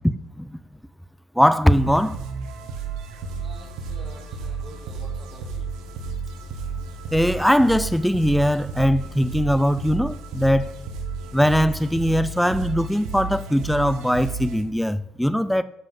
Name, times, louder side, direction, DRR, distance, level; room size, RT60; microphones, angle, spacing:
voice 1, 1.4-2.2 7.1-10.7 11.3-15.6, equal, ahead, 0.6 m, -20 dB
sound 1, 1.7-14.6, right 4 dB, 80° right, 1.8 m, -32 dB
voice 2, 3.4-5.6, right 3 dB, 30° right, 2.6 m, -47 dB
12.0 x 5.7 x 7.7 m
cardioid pair, 135°, 0 cm